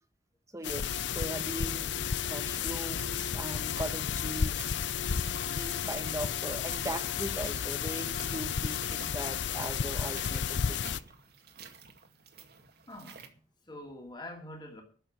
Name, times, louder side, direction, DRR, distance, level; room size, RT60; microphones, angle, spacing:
voice 1, 0.5-1.9 2.3-4.7 5.5-11.0, right 1 dB, 15° right, 1.2 m, -39 dB
sound 1, 0.6-11.0, left 7 dB, 65° left, 0.5 m, -32 dB
sound 2, 1.7-13.3, right 6 dB, 55° right, 2.1 m, -53 dB
voice 2, 12.9-13.3 13.6-14.8, left 1 dB, 25° left, 2.8 m, -45 dB
11.0 x 7.2 x 9.3 m
head